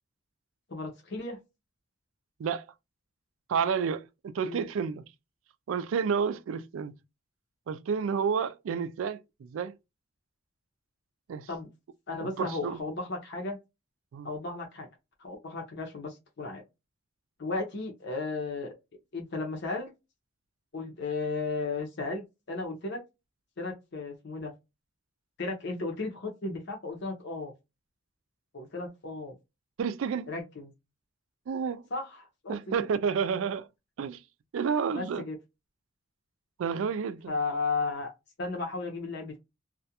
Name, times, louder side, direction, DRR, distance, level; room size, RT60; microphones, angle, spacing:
voice 1, 0.7-1.4 4.4-4.6 11.5-11.7 12.1-13.6 14.2-14.9 15.2-16.6 17.4-18.7 19.1-19.9 20.7-23.0 23.6-24.5 25.4-27.5 28.5-29.3 30.3-30.7 31.9-32.9 34.9-35.4 37.3-38.1 38.4-39.4, left 3 dB, 60° left, 0.7 m, -34 dB
voice 2, 3.5-5.1 5.7-7.0 7.7-9.7 11.3-11.5 12.2-12.8 14.1-14.3 29.8-30.3 31.5-31.9 32.5-33.7 34.0-34.2 34.5-35.2 36.6-37.3, right 6 dB, 80° right, 0.3 m, -30 dB
2.4 x 2.1 x 2.8 m
head